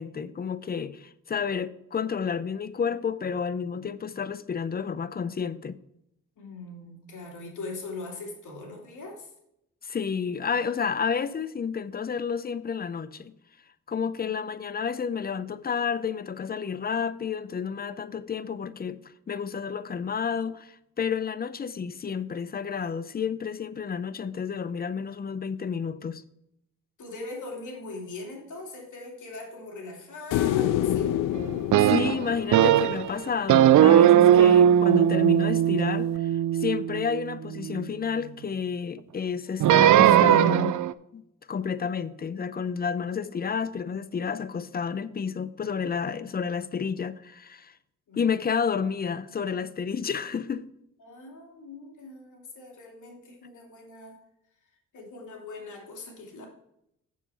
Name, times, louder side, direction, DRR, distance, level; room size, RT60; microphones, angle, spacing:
voice 1, 0.0-5.8 9.8-13.3 13.9-19.0 19.3-26.2 31.8-40.8 41.1-41.2 41.5-47.7 48.1-50.7, left 6 dB, 30° left, 0.6 m, -30 dB
voice 2, 6.4-9.3 27.0-31.2 48.1-48.2 51.0-54.2 54.9-56.5, left 2 dB, 65° left, 2.7 m, -41 dB
sound 1, 30.3-33.6 36.2-36.3, left 12 dB, 80° left, 0.5 m, -28 dB
sound 2, 31.7-33.1 33.5-37.8 39.6-40.9, right 10 dB, 65° right, 0.5 m, -19 dB
7.2 x 7.0 x 4.2 m
cardioid pair, 75°, 33 cm